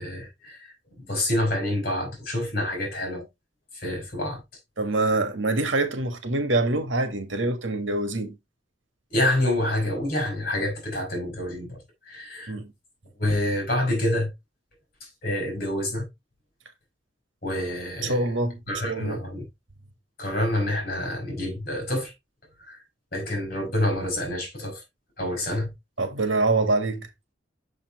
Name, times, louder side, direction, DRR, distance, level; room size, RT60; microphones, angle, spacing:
voice 1, 0.0-3.2 3.7-4.4 5.0-5.2 9.1-12.5 13.2-14.3 15.0-16.1 17.4-18.3 18.7-19.5 20.2-22.1 22.6-22.8 23.1-24.8 25.2-25.7, left 1 dB, 50° left, 4.5 m, -27 dB
voice 2, 4.8-8.4 12.5-12.7 18.0-19.2 26.0-27.1, right 2 dB, 80° right, 1.6 m, -25 dB
6.8 x 5.7 x 3.0 m
head